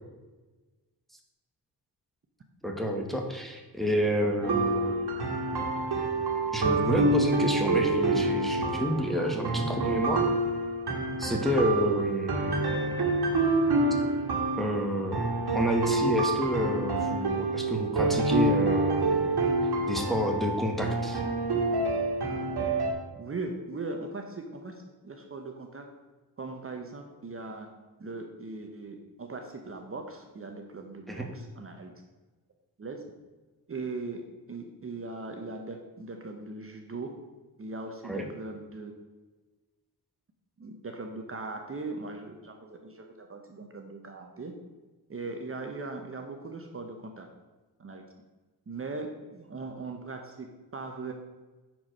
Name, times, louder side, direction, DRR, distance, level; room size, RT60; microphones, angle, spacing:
voice 1, 2.6-5.1 6.5-10.3 11.2-12.9 14.6-15.2 15.5-19.4 19.8-21.2 31.1-31.3 38.0-38.3, equal, ahead, 2 dB, 1.1 m, -29 dB
sound 1, 4.4-22.9, right 2 dB, 75° right, 1.7 m, -27 dB
voice 2, 23.2-25.8 26.4-27.7 28.0-31.9 32.8-33.0 33.7-37.1 37.6-38.9 40.6-44.5 45.1-47.3 47.8-48.0 48.7-51.1, right 3 dB, 35° right, 4 dB, 0.8 m, -39 dB
9.4 x 4.7 x 6.3 m, 1.2 s
wide cardioid pair, 160°, 39 cm